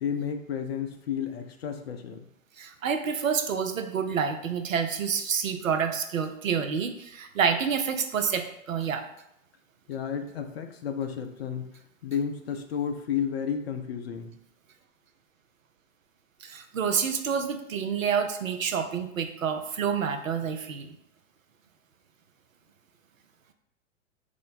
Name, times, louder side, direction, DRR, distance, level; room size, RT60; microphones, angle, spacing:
voice 1, 0.0-2.3 9.9-11.7 12.0-14.3, left 7 dB, 55° left, 5 dB, 0.5 m, -32 dB
voice 2, 2.6-9.0 16.4-21.0, right 7 dB, 75° right, 7 dB, 0.5 m, -28 dB
3.0 x 2.0 x 3.9 m, 0.78 s
figure-of-eight pair, 105°, 39 cm